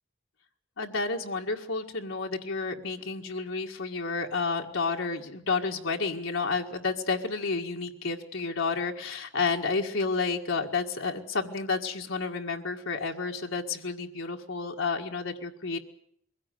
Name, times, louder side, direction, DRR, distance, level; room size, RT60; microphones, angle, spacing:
voice 1, 0.8-15.8, left 4 dB, 75° left, 2 dB, 1.8 m, -30 dB
22.5 x 16.0 x 9.1 m, 0.70 s
head